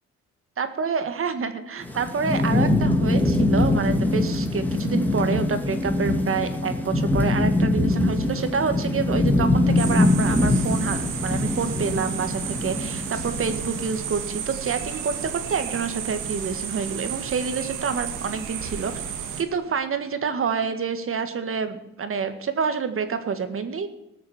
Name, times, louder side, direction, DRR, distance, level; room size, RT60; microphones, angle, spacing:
voice 1, 0.6-18.9 19.4-23.9, right 5 dB, 45° right, 9 dB, 1.7 m, -28 dB
Thunderstorm / Rain, 1.8-14.1, left 2 dB, 5° left, 2.0 m, -23 dB
sound 1, 9.8-19.4, right 8 dB, 90° right, 1.7 m, -32 dB
19.0 x 6.6 x 7.2 m, 0.94 s
cardioid pair, 90°, 30 cm